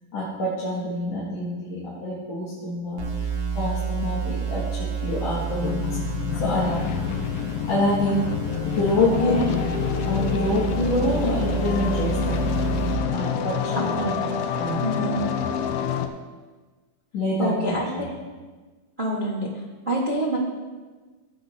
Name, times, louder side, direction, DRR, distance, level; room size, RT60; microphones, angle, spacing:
voice 1, 0.1-5.8 6.4-7.0 7.7-8.3 8.6-9.6 10.0-12.4 13.1-14.1 14.5-14.8 17.1-18.1, left 1 dB, 60° left, -9 dB, 3.1 m, -26 dB
sound 1, 3.0-13.0, right 6 dB, 80° right, 3.2 m, -30 dB
sound 2, 5.4-16.1, left 8 dB, 80° left, 1.3 m, -28 dB
voice 2, 9.0-9.5 13.8-14.3 14.8-15.3 17.4-18.0 19.0-19.5 19.9-20.4, right 1 dB, 55° right, -5 dB, 0.5 m, -26 dB
16.0 x 8.3 x 2.8 m, 1.4 s
omnidirectional pair, 3.4 m